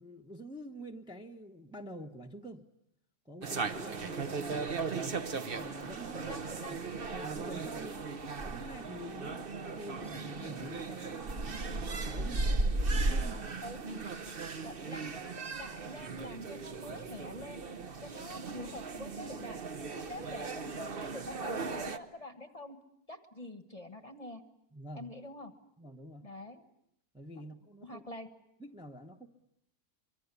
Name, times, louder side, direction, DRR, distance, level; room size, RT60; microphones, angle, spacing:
voice 1, 0.0-2.6 3.2-5.2 5.5-6.8 7.1-8.0 8.4-12.5 12.8-13.4 24.7-25.1 25.8-26.3 27.1-28.0 28.6-29.3, right 1 dB, 5° right, 2 dB, 1.1 m, -47 dB
sound 1, 3.4-22.0, right 3 dB, 40° right, 1.2 m, -36 dB
voice 2, 6.1-6.8 8.0-8.2 13.6-13.8 14.6-17.6 18.0-19.6 20.0-22.8 23.1-24.4 24.9-25.5 26.2-26.6 27.8-28.3, left 1 dB, 25° left, 9 dB, 1.4 m, -46 dB
25.0 x 24.0 x 8.4 m, 0.76 s
omnidirectional pair, 1.7 m